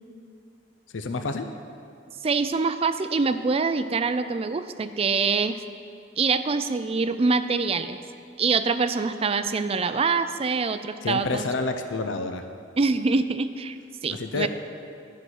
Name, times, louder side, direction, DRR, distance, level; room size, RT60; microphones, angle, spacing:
voice 1, 0.9-1.5 11.0-12.4 14.1-14.5, left 3 dB, 80° left, 7 dB, 0.6 m, -28 dB
voice 2, 2.2-5.6 6.2-8.0 8.4-11.4 12.8-13.8 14.0-14.5, right 4 dB, 30° right, 11 dB, 0.4 m, -25 dB
12.5 x 6.1 x 7.9 m, 2.4 s
head